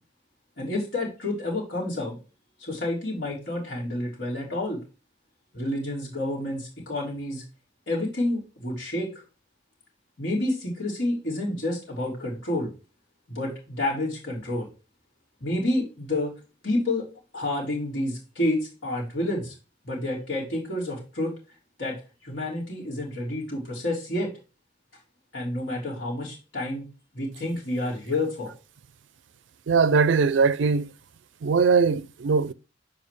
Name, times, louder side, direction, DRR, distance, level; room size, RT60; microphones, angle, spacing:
voice 1, 0.6-2.2 2.6-4.8 5.5-7.4 7.9-9.1 10.2-12.7 13.3-14.7 15.4-16.3 16.6-17.1 17.3-19.5 19.8-21.3 21.8-22.0 22.2-24.3 25.3-26.8 27.1-28.5, left 1 dB, 75° left, 3.5 m, -29 dB
voice 2, 29.7-30.9 31.4-32.5, right 5 dB, 70° right, 0.4 m, -21 dB
7.5 x 4.7 x 3.2 m
head